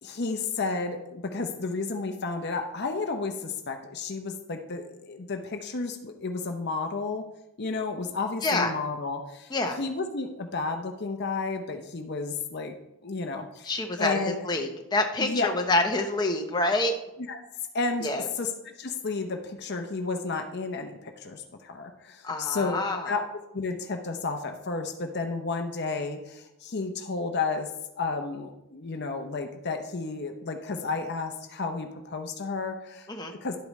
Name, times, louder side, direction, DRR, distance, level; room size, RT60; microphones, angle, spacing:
voice 1, 0.0-7.2 7.6-12.7 13.0-13.7 14.0-14.4 15.2-15.5 17.3-17.4 17.7-18.5 18.8-22.8 23.1-23.2 23.5-27.7 28.0-33.1 33.4-33.6, left 4 dB, 50° left, 5 dB, 0.7 m, -32 dB
voice 2, 8.4-8.7 9.5-9.8 13.6-16.9 18.0-18.3 22.2-23.1 33.1-33.3, left 2 dB, 20° left, 3 dB, 0.9 m, -27 dB
11.5 x 8.3 x 3.2 m, 0.89 s
head